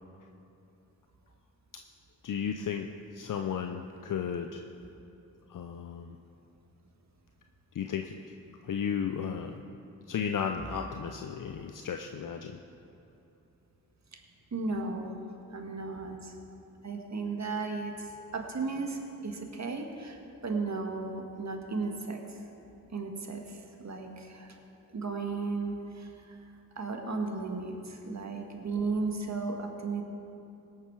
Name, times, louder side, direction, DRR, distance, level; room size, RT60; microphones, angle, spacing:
voice 1, 2.2-2.9 3.1-4.6 5.5-6.2 7.7-8.3 8.6-9.5 10.1-12.6, left 7 dB, 55° left, 5 dB, 0.7 m, -34 dB
voice 2, 14.5-15.2 15.5-16.4 16.8-22.2 22.9-24.5 24.9-26.4 26.8-30.0, right 3 dB, 45° right, 3 dB, 1.8 m, -35 dB
18.0 x 6.6 x 4.8 m, 2.8 s
supercardioid pair, 45°, 37 cm